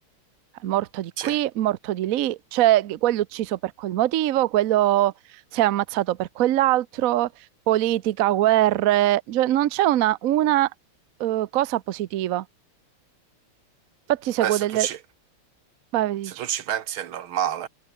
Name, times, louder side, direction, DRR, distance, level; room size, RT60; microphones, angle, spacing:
voice 1, 0.6-5.1 5.5-7.3 7.7-10.7 11.2-12.4 14.1-14.9 15.9-16.4, right 14 dB, 85° right, 0.7 m, -22 dB
voice 2, 14.4-15.0 16.2-17.7, right 10 dB, 70° right, 2.0 m, -28 dB
omnidirectional pair, 2.4 m